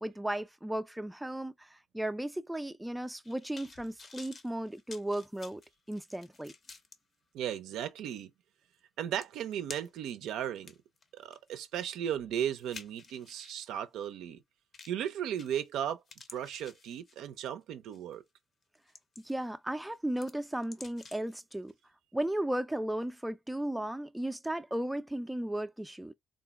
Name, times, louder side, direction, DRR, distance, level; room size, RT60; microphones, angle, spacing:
voice 1, 0.0-5.6 5.9-6.5 19.2-21.7 22.1-26.1, right 1 dB, 5° right, 0.3 m, -35 dB
sound 1, 3.0-7.0 7.5-7.6 8.8-8.9 9.2-10.1 10.5-13.6 14.7-15.0 15.4-15.8 16.1-17.4 17.9-18.1 18.6-19.5 19.8-21.4 21.7-21.8, left 4 dB, 45° left, 0.6 m, -52 dB
voice 2, 7.3-8.3 9.0-10.7 11.1-14.4 14.9-16.0 16.3-18.2, right 10 dB, 85° right, 0.4 m, -36 dB
3.7 x 2.0 x 2.3 m
cardioid pair, 90°, 0 cm